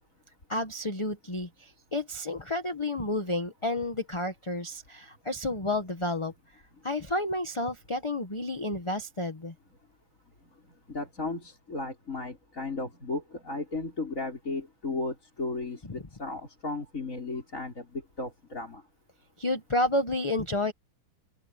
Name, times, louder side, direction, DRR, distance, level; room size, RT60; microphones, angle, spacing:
voice 1, 0.5-6.3 6.8-9.5 19.4-20.7, left 2 dB, 20° left, 1.1 m, -30 dB
voice 2, 10.9-18.8, left 3 dB, 35° left, 5.6 m, -35 dB
open air
omnidirectional pair, 2.4 m